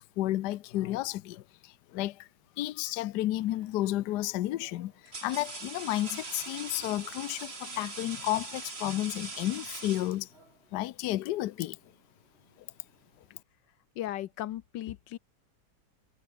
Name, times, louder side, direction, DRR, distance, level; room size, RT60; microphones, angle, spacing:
voice 1, 0.0-2.3 2.6-4.9 5.2-10.3 10.7-11.8, left 15 dB, 75° left, 1.2 m, -32 dB
sound 1, 3.5-3.8 4.6-10.6, right 3 dB, 35° right, 3.1 m, -42 dB
voice 2, 14.0-15.2, left 13 dB, 90° left, 1.5 m, -36 dB
omnidirectional pair, 1.9 m